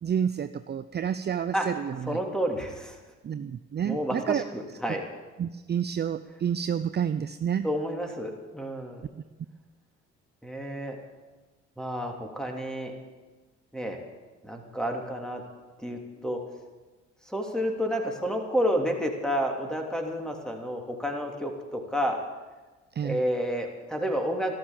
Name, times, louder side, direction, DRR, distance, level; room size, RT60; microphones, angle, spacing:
voice 1, 0.0-2.2 3.2-4.4 5.4-7.7 22.9-23.2, right 8 dB, 35° right, 12 dB, 0.5 m, -29 dB
voice 2, 2.1-3.0 3.8-5.0 7.6-9.1 10.4-11.0 11.8-12.9 13.7-14.0 14.4-15.4 15.8-16.4 17.2-22.2 23.0-24.5, equal, ahead, 2 dB, 3.0 m, -30 dB
13.5 x 12.0 x 7.4 m, 1.2 s
supercardioid pair, 70°, 31 cm